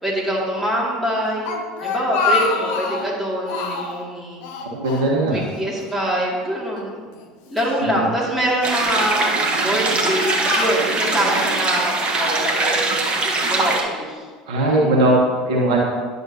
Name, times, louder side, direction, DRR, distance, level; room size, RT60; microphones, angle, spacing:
voice 1, 0.0-1.5 1.8-4.4 5.3-7.0 7.5-9.3 9.6-11.9 12.2-13.1 13.5-14.3, right 1 dB, 5° right, -6 dB, 2.5 m, -24 dB
Speech, 1.2-3.1 3.5-4.0 4.4-5.5 5.8-5.9 6.8-7.8 8.5-8.9 9.5-11.2, left 4 dB, 55° left, 0.9 m, -26 dB
voice 2, 4.7-5.4 7.8-8.1 14.5-15.8, right 1 dB, 65° right, -3 dB, 1.5 m, -19 dB
sound 1, 8.6-13.8, right 3 dB, 30° right, 1.3 m, -21 dB
10.5 x 6.6 x 2.9 m, 1.5 s
figure-of-eight pair, 70°, 4 cm